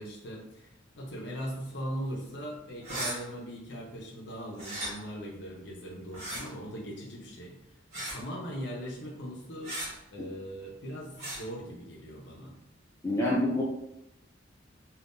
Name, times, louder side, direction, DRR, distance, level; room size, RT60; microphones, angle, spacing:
voice 1, 0.0-7.6 7.9-9.8 10.1-12.5, equal, 60° left, -2 dB, 0.6 m, -40 dB
sound 1, 2.8-3.2 4.6-4.9 6.1-6.4 7.9-8.2 9.6-9.9 11.2-11.4, right 1 dB, 40° right, 1.3 m, -36 dB
voice 2, 13.0-13.6, left 1 dB, 15° left, -4 dB, 0.3 m, -26 dB
3.6 x 2.3 x 2.5 m, 0.86 s
head